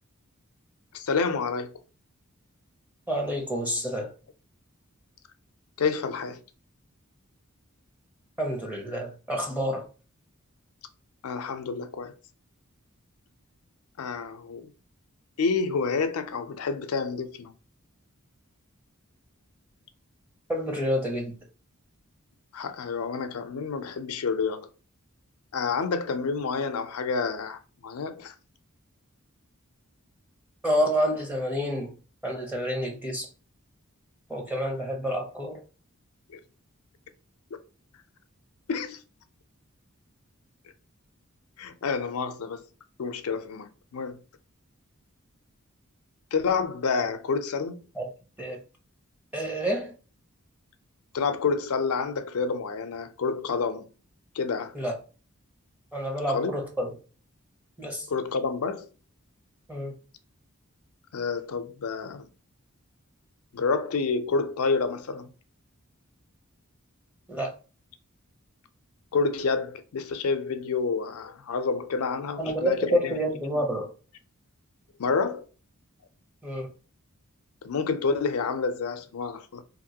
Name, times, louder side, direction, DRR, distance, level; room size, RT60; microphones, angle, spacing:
voice 1, 0.9-1.8 5.8-6.4 11.2-12.1 14.0-14.7 15.4-17.5 22.5-24.7 25.5-28.3 36.3-36.4 37.5-37.6 38.7-39.0 41.6-42.6 43.0-44.2 46.3-47.8 51.1-53.9 54.4-54.7 56.3-56.5 58.1-58.9 61.1-62.3 63.5-65.3 69.1-73.2 73.6-73.7 75.0-75.5 77.6-79.6, left 4 dB, 85° left, 0.5 m, -28 dB
voice 2, 3.1-4.1 8.4-9.9 20.5-21.3 30.6-31.9 32.2-33.3 34.3-35.6 48.0-48.1 48.4-48.6 49.3-49.9 54.7-55.0 55.9-56.9 57.8-58.1 59.7-59.9 67.3-67.5 72.4-73.9 76.4-76.7, equal, 10° right, 0.6 m, -28 dB
2.9 x 2.5 x 2.8 m
head